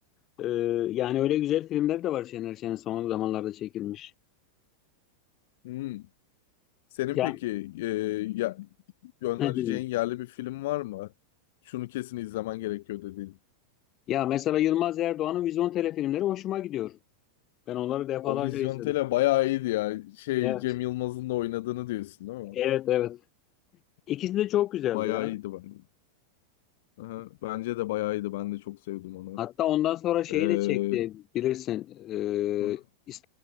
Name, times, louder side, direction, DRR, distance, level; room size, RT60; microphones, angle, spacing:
voice 1, 0.4-4.1 7.2-7.4 9.4-9.8 14.1-17.0 17.7-18.9 20.4-20.6 22.5-23.2 24.1-25.3 29.4-33.3, left 13 dB, 35° left, 1.3 m, -28 dB
voice 2, 5.6-6.1 6.9-8.7 9.0-11.1 11.6-13.4 18.2-22.6 24.9-25.8 27.0-29.4 30.3-31.0 32.6-32.8, left 17 dB, 55° left, 2.9 m, -31 dB
figure-of-eight pair, 90°, 0 cm